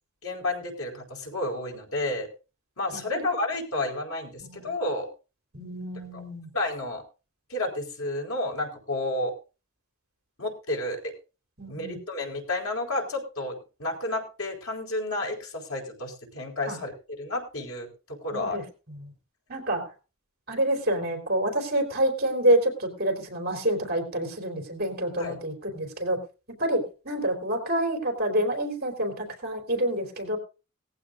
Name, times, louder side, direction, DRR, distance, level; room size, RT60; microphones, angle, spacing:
voice 1, 0.2-2.3 2.8-5.1 6.1-6.2 6.5-7.0 7.5-9.3 10.4-11.1 11.7-18.6 25.2-25.4, left 2 dB, 85° left, 1 dB, 4.4 m, -31 dB
voice 2, 2.9-3.2 4.4-4.7 5.5-6.5 11.6-12.0 16.7-16.8 18.3-18.6 18.9-19.1 19.5-19.9 20.5-26.2 26.5-30.4, right 1 dB, 50° right, 3 dB, 3.8 m, -27 dB
18.5 x 15.0 x 2.6 m, 0.32 s
head